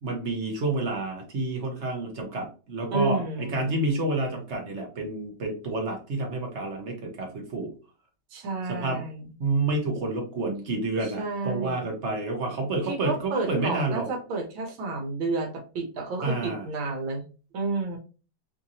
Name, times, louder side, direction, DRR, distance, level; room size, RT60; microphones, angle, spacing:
voice 1, 0.0-7.7 8.7-9.0 9.4-14.1 16.2-16.6, right 2 dB, 55° right, 2 dB, 0.8 m, -29 dB
voice 2, 2.9-3.7 8.3-9.3 11.0-12.0 12.8-17.2 17.5-18.0, right 3 dB, 90° right, 3 dB, 1.7 m, -31 dB
3.6 x 2.8 x 2.7 m, 0.35 s
omnidirectional pair, 2.1 m